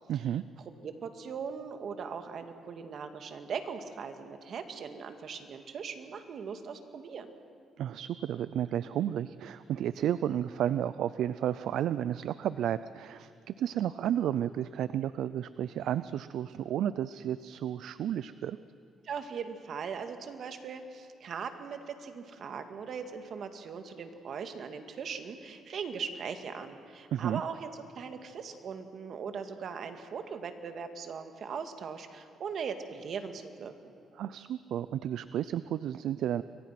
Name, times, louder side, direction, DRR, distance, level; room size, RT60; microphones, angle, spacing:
voice 1, 0.1-0.4 7.8-18.6 27.1-27.4 34.2-36.4, right 10 dB, 75° right, 15 dB, 0.5 m, -32 dB
voice 2, 0.7-7.3 19.0-27.7 28.0-33.9, right 6 dB, 60° right, 7 dB, 2.2 m, -39 dB
29.5 x 23.5 x 6.0 m, 2.6 s
cardioid pair, 90°, 0 cm